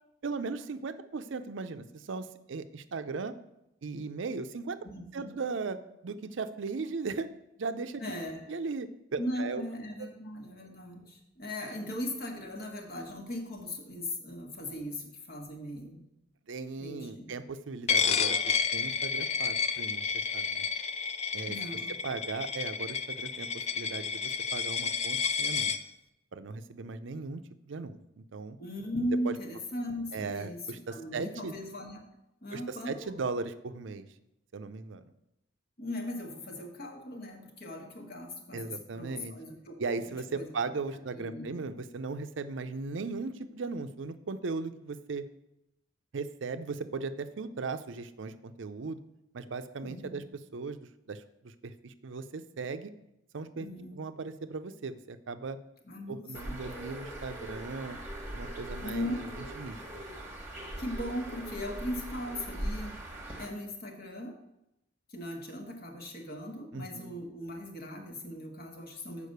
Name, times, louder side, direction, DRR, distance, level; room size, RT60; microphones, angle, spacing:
voice 1, 0.2-3.3 3.8-4.8 5.1-7.3 7.6-8.0 8.5-9.6 10.0-10.1 16.5-20.6 21.3-21.6 22.0-25.7 26.3-27.4 27.7-28.6 29.3-29.4 30.1-31.5 32.5-34.1 34.5-35.0 38.5-39.3 39.8-45.2 46.1-49.0 49.3-50.2 50.5-52.9 53.3-53.7 53.9-55.6 56.1-58.0 58.3-59.3 59.6-59.8 66.7-67.1, right 4 dB, 70° right, 11 dB, 0.5 m, -37 dB
voice 2, 4.8-5.3 8.0-8.5 9.2-16.0 16.8-17.3 21.5-21.9 28.6-30.6 30.9-32.1 32.4-33.1 35.8-40.5 40.9-41.5 49.8-50.2 53.5-54.0 55.8-56.6 58.8-59.2 60.8-63.0 63.4-64.4 65.1-69.3, left 1 dB, 50° left, 3 dB, 1.3 m, -38 dB
Coin (dropping), 17.9-25.8, left 6 dB, 35° left, 0.4 m, -31 dB
Bird, 56.3-63.5, right 1 dB, 10° right, 1.3 m, -40 dB
6.6 x 5.1 x 6.6 m, 0.86 s
head